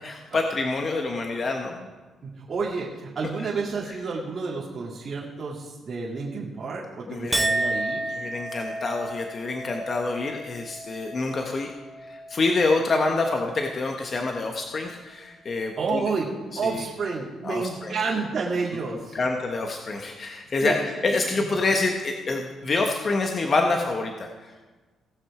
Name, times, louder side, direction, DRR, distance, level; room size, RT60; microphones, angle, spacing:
voice 1, 0.0-1.9 3.4-3.5 7.1-7.4 8.1-11.7 12.0-16.1 16.6-16.8 17.4-17.9 19.1-24.5, left 3 dB, 40° left, 2 dB, 1.1 m, -27 dB
voice 2, 2.3-8.2 15.8-16.3 16.5-19.2 20.6-20.7 21.1-21.5, right 4 dB, 45° right, -6 dB, 2.1 m, -30 dB
Chink clink, 7.3-13.9 14.3-14.8, right 2 dB, 15° right, 0.7 m, -32 dB
17.5 x 6.3 x 4.9 m, 1.3 s
cardioid pair, 90°, 0 cm